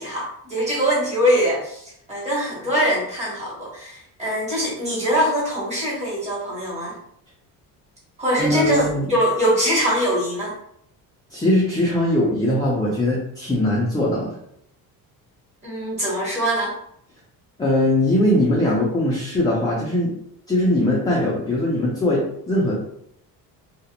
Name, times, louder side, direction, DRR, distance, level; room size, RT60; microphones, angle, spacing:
voice 1, 0.0-7.0 8.2-10.5 15.6-16.7, equal, 20° right, -6 dB, 1.2 m, -23 dB
voice 2, 8.4-9.1 11.3-14.3 17.6-20.1 20.5-22.7, left 1 dB, 10° left, -6 dB, 0.4 m, -20 dB
2.4 x 2.1 x 2.8 m, 0.71 s
cardioid pair, 150°, 36 cm